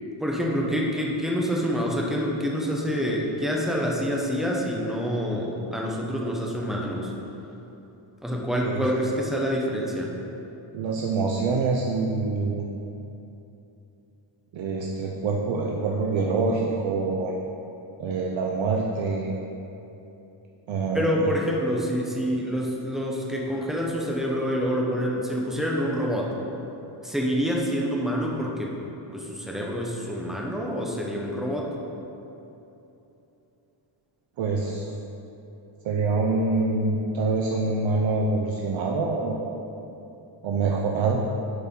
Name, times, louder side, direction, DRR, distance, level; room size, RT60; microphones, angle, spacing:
voice 1, 0.2-7.1 8.2-10.1 20.9-26.3 27.0-28.7 29.1-31.7, equal, ahead, -3 dB, 0.9 m, -27 dB
voice 2, 10.7-12.6 14.5-17.3 18.0-19.3 20.7-21.3 34.4-34.9 35.8-39.6 40.4-41.2, right 3 dB, 65° right, -1 dB, 0.7 m, -25 dB
10.5 x 4.4 x 3.7 m, 2.9 s
wide cardioid pair, 135°, 50 cm